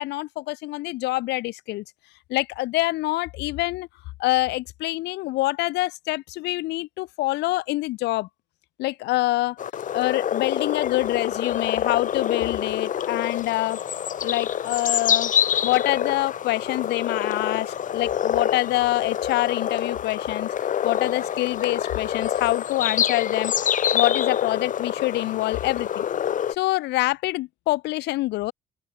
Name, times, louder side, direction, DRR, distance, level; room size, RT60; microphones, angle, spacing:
voice 1, 0.0-1.8 2.3-3.9 4.2-8.3 8.8-9.6 9.9-13.8 14.2-15.3 15.6-20.5 20.8-26.0 26.5-28.5, left 19 dB, 85° left, 2.4 m, -26 dB
sound 1, 9.6-26.5, left 9 dB, 50° left, 4.1 m, -26 dB
open air
cardioid pair, 110°, 17 cm